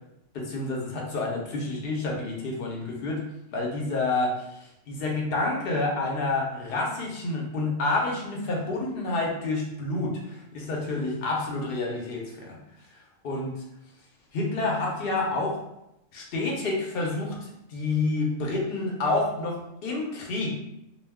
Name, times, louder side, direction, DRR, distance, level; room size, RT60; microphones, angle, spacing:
voice 1, 0.3-3.2 3.5-4.6 4.9-12.6 13.2-13.6 14.3-15.6 16.1-20.5, left 2 dB, 55° left, -1 dB, 0.8 m, -29 dB
2.3 x 2.2 x 3.4 m, 0.85 s
omnidirectional pair, 1.3 m